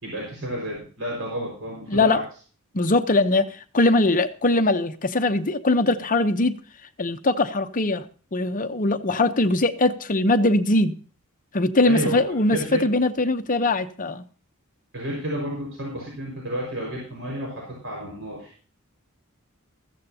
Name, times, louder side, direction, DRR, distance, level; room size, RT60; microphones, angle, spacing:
voice 1, 0.0-2.2 11.8-12.8 14.9-18.7, right 1 dB, 60° right, 5.0 m, -31 dB
voice 2, 1.9-2.2 2.7-6.6 7.0-8.0 8.3-10.9 11.5-14.2, left 2 dB, 40° left, 0.9 m, -21 dB
15.0 x 14.5 x 2.8 m
head